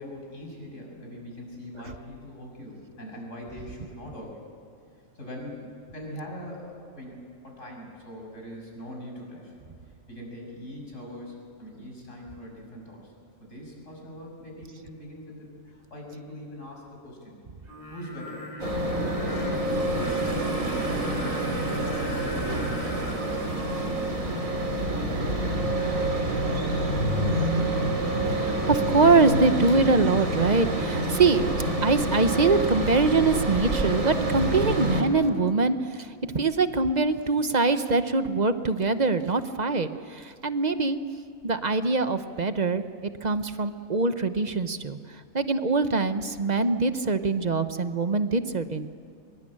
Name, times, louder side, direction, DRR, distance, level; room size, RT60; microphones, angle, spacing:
voice 1, 0.0-4.5 5.2-9.5 10.1-13.1 13.4-17.4 17.9-21.0 21.4-27.5, equal, 70° left, 0 dB, 7.0 m, -42 dB
Singing, 17.7-23.8, left 1 dB, 85° left, 5.2 m, -40 dB
sound 1, 18.6-35.0, right 1 dB, 90° right, 3.4 m, -27 dB
voice 2, 28.3-31.4 31.8-41.0 41.4-48.9, right 3 dB, 35° right, 10 dB, 1.0 m, -24 dB
25.0 x 22.0 x 8.7 m, 2.3 s
omnidirectional pair, 1.4 m